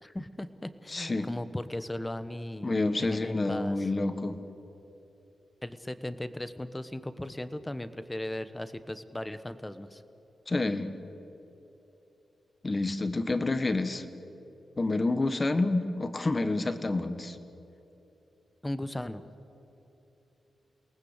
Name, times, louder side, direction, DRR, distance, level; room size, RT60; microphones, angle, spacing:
voice 1, 0.0-2.8 3.1-3.8 5.6-10.0 18.6-19.2, left 1 dB, 10° left, 12 dB, 1.1 m, -37 dB
voice 2, 0.9-1.3 2.6-4.4 10.5-10.9 12.6-14.0 14.8-17.4, left 2 dB, 30° left, 10 dB, 1.5 m, -28 dB
29.5 x 19.0 x 8.2 m, 3.0 s
wide cardioid pair, 110°, 0 cm